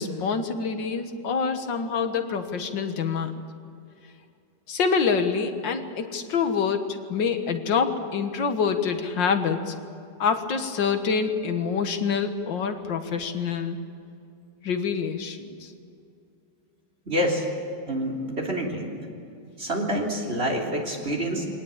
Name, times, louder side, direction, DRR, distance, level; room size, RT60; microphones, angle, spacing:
voice 1, 0.0-3.3 4.7-9.7 10.2-13.8 14.6-15.7, left 5 dB, 85° left, 7 dB, 2.1 m, -26 dB
voice 2, 17.1-17.4 17.9-18.9 19.6-21.5, equal, 35° right, 1 dB, 3.7 m, -27 dB
24.0 x 18.5 x 8.9 m, 2.5 s
omnidirectional pair, 1.9 m